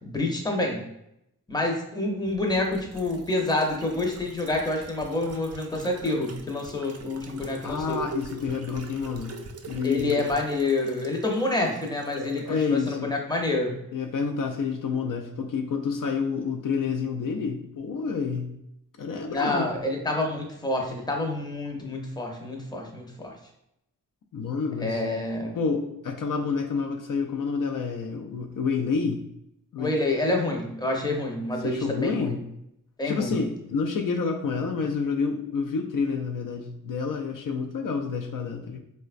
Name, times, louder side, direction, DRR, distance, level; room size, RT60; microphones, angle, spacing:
voice 1, 0.0-0.9 1.5-8.0 9.8-13.8 19.3-23.3 24.8-25.6 29.8-32.4 33.0-33.4, left 2 dB, 10° left, 1 dB, 0.6 m, -28 dB
sound 1, 2.3-12.6 12.9-13.0, right 3 dB, 45° right, 0.4 m, -43 dB
voice 2, 7.6-9.4 9.6-10.3 12.5-13.1 13.9-18.5 19.0-19.7 24.3-25.0 25.6-29.2 29.7-29.9 31.6-32.4 33.1-38.8, left 5 dB, 65° left, 3 dB, 0.5 m, -28 dB
3.8 x 2.2 x 2.4 m, 0.80 s
wide cardioid pair, 70°, 34 cm